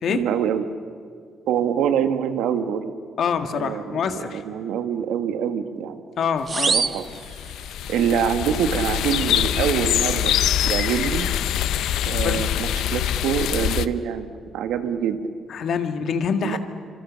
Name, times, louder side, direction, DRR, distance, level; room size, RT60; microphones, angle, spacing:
voice 1, 0.1-0.6 1.5-2.9 3.5-6.0 6.7-7.1 7.9-10.4 10.6-11.3 12.0-14.3 14.5-15.2 16.4-16.6, right 8 dB, 90° right, 8 dB, 1.5 m, -25 dB
voice 2, 3.2-4.4 6.2-6.8 12.2-12.5 15.5-16.6, left 6 dB, 65° left, 7 dB, 1.8 m, -25 dB
sound 1, 6.5-8.0, right 5 dB, 35° right, 0.8 m, -26 dB
sound 2, 6.8-13.9, left 11 dB, 80° left, 0.7 m, -24 dB
26.0 x 25.5 x 7.4 m, 2.1 s
cardioid pair, 90°, 0 cm